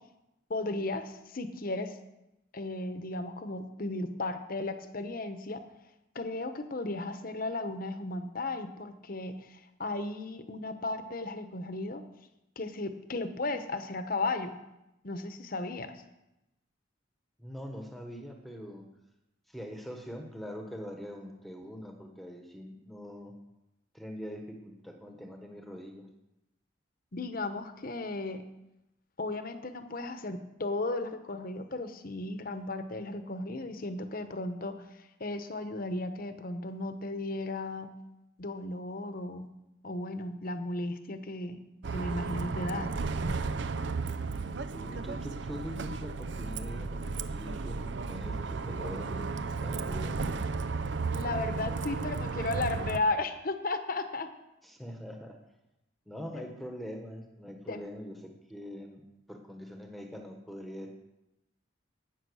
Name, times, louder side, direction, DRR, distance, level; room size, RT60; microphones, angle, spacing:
voice 1, 0.5-2.0 2.5-5.6 6.1-12.0 12.6-14.5 15.0-16.0 27.1-28.4 29.2-37.9 38.4-39.5 39.8-41.6 41.9-42.9 51.1-54.3 56.3-56.4 57.7-57.8, left 2 dB, 45° left, 9 dB, 1.0 m, -35 dB
voice 2, 17.4-18.8 19.5-23.3 23.9-26.1 44.7-47.0 47.3-49.3 49.6-50.3 54.6-55.4 56.1-59.0 59.3-60.9, equal, ahead, 3 dB, 1.2 m, -43 dB
Bus, 41.8-53.0, right 4 dB, 65° right, 0.6 m, -34 dB
12.0 x 9.0 x 6.3 m, 0.92 s
head